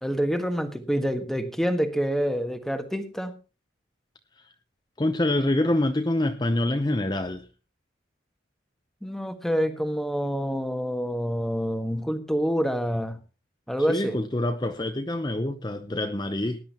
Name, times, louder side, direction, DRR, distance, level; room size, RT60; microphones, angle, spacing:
voice 1, 0.0-3.3 9.0-13.2 13.7-14.2, equal, ahead, 7 dB, 1.4 m, -27 dB
voice 2, 5.0-7.4 13.9-16.6, left 1 dB, 20° left, 6 dB, 0.8 m, -26 dB
19.0 x 11.0 x 3.0 m, 0.31 s
head